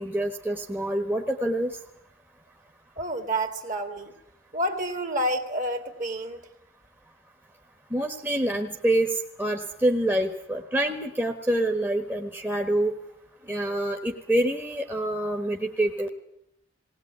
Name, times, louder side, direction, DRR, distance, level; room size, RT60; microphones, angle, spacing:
voice 1, 0.0-1.7 7.9-9.1 9.4-12.9 13.5-16.1, right 1 dB, 10° right, 2 dB, 1.3 m, -26 dB
voice 2, 3.0-4.2 4.5-6.5, right 1 dB, 40° right, 7 dB, 2.2 m, -29 dB
19.5 x 19.0 x 9.3 m, 0.76 s
head